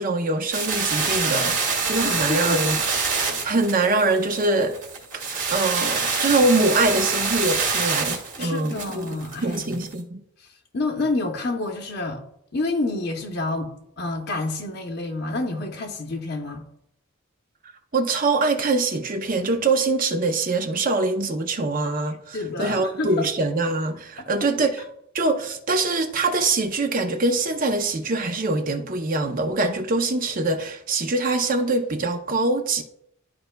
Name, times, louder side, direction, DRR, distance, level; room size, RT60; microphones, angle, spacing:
voice 1, 0.0-2.8 3.1-4.8 5.1-9.1 9.4-10.2 17.9-24.8 25.1-32.8, right 3 dB, 40° right, 0.6 m, -23 dB
sound 1, 0.5-9.9, right 4 dB, 60° right, 2.1 m, -26 dB
voice 2, 2.0-2.9 8.4-9.8 10.4-10.5 10.7-12.2 12.5-16.6 22.3-23.3 24.2-24.3, left 2 dB, 50° left, 0.8 m, -29 dB
12.5 x 4.5 x 2.2 m
head